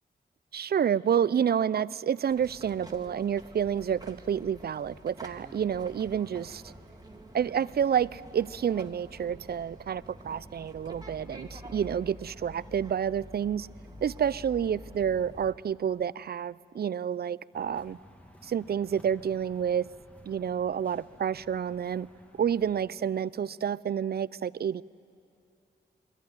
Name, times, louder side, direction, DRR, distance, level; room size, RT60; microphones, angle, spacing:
voice 1, 0.5-6.7 7.3-13.7 14.0-18.0 18.4-19.9 20.3-22.1 22.4-24.8, right 8 dB, 55° right, 20 dB, 0.4 m, -29 dB
sound 1, 2.3-15.5, equal, 20° right, 2.1 m, -48 dB
sound 2, 17.5-22.8, equal, 5° left, 2.1 m, -55 dB
22.0 x 14.5 x 9.6 m, 2.6 s
cardioid pair, 50°, 19 cm